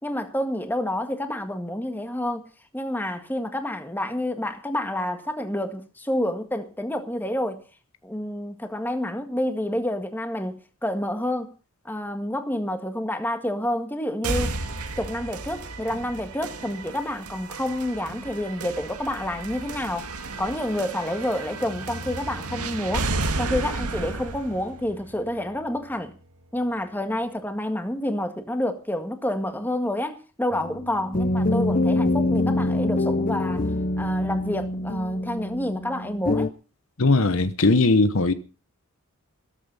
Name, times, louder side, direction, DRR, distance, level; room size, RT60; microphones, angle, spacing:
voice 1, 0.0-2.5 2.7-7.6 8.0-11.5 11.9-14.6 15.0-20.1 20.4-23.1 23.4-26.2 26.5-33.7 34.0-36.5, left 1 dB, 10° left, 1.7 m, -28 dB
sound 1, 14.2-26.2, right 2 dB, 85° right, 2.1 m, -33 dB
sound 2, 30.5-36.5, left 2 dB, 35° left, 0.7 m, -25 dB
voice 2, 37.0-38.3, left 3 dB, 65° left, 1.1 m, -19 dB
15.5 x 14.0 x 5.5 m
head